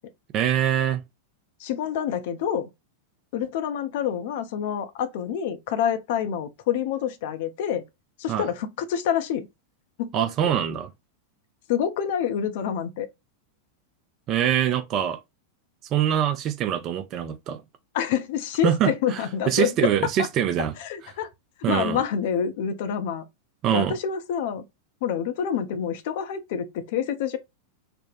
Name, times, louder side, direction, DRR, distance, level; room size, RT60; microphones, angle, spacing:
voice 1, 0.3-1.0 8.3-8.5 10.1-10.9 14.3-15.2 15.9-17.6 18.6-20.7 21.6-22.0 23.6-23.9, right 10 dB, 35° right, 0.5 m, -24 dB
voice 2, 1.6-2.7 3.3-7.8 8.2-9.5 10.0-10.1 11.7-13.1 17.9-19.7 20.8-21.3 21.7-23.2 23.7-24.6 25.0-27.4, left 8 dB, 50° left, 0.5 m, -27 dB
3.4 x 2.1 x 2.4 m
figure-of-eight pair, 90°, 0 cm